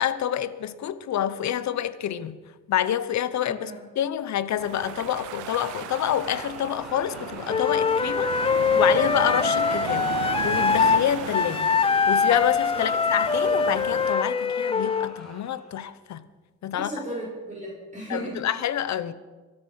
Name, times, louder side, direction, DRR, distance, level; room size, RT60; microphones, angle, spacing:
voice 1, 0.0-2.4 2.7-10.2 10.4-11.7 12.1-16.2 16.6-16.9 18.1-19.1, left 10 dB, 65° left, 1.0 m, -27 dB
voice 2, 3.4-3.9 12.7-12.9 16.7-18.4, right 1 dB, 25° right, 6.5 m, -35 dB
sound 1, 4.6-14.1, right 16 dB, 85° right, 0.5 m, -36 dB
sound 2, 4.8-15.8, left 1 dB, ahead, 5.2 m, -41 dB
Wind instrument woodwind instrument, 7.5-11.0 11.3-15.1, left 5 dB, 20° left, 0.4 m, -23 dB
24.5 x 8.2 x 5.7 m
cardioid pair, 90°, 30 cm